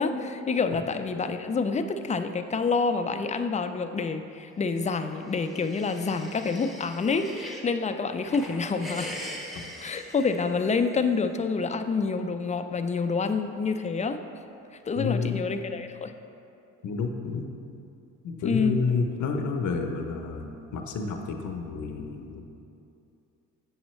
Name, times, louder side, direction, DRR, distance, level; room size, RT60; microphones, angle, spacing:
voice 1, 0.0-9.1 9.8-14.2 14.9-16.1 18.4-18.8, left 4 dB, 25° left, 8 dB, 0.4 m, -27 dB
sound 1, 5.0-7.7 8.1-11.0, left 1 dB, ahead, 0.9 m, -41 dB
voice 2, 14.9-15.5 16.8-17.5 18.2-22.4, left 4 dB, 75° left, 4 dB, 0.8 m, -30 dB
7.4 x 7.1 x 3.1 m, 2.7 s
cardioid pair, 90°, 30 cm